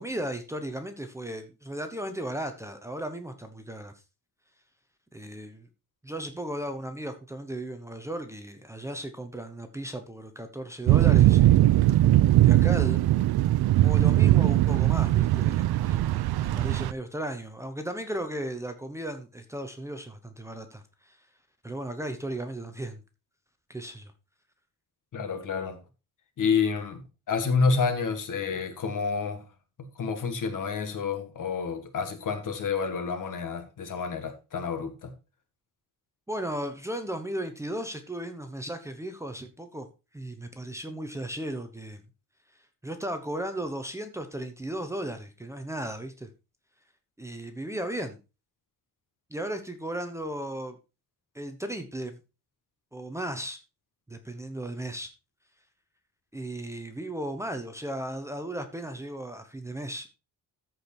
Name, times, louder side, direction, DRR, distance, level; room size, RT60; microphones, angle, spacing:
voice 1, 0.0-3.9 5.1-5.7 6.0-11.6 12.4-13.1 13.8-21.2 21.6-23.0 23.7-24.1 36.3-39.9 40.1-42.0 42.8-46.3 47.2-48.2 49.3-50.8 51.3-52.2 52.9-53.6 54.1-55.1 56.3-60.1, right 1 dB, 5° right, 1.0 m, -35 dB
sound 1, 10.9-16.9, right 14 dB, 80° right, 0.6 m, -20 dB
voice 2, 25.1-25.8 26.4-27.0 27.3-29.4 29.8-35.1, left 5 dB, 55° left, 1.9 m, -29 dB
13.5 x 5.1 x 4.4 m
wide cardioid pair, 165°, 38 cm